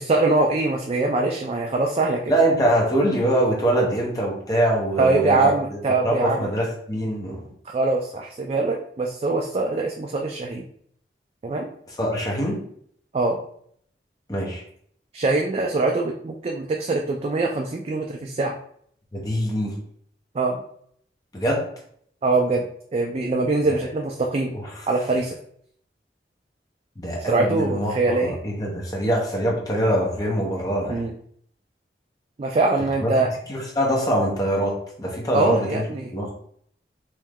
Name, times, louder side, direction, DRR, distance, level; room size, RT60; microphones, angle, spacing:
voice 1, 0.0-2.3 5.0-6.5 7.7-10.6 11.4-11.7 13.1-13.4 15.1-18.5 20.3-20.6 22.2-22.6 22.9-24.6 24.9-25.4 27.3-28.4 30.9-31.1 32.4-33.3 35.3-36.1, right 3 dB, 35° right, 1 dB, 0.3 m, -23 dB
voice 2, 2.3-5.5 6.0-7.4 12.0-12.6 14.3-14.6 19.1-19.7 21.3-21.7 23.7-23.8 24.5-24.7 27.0-31.0 33.0-33.1 33.5-35.8 36.1-36.3, right 1 dB, 20° left, -2 dB, 0.9 m, -23 dB
3.1 x 2.7 x 3.5 m, 0.64 s
head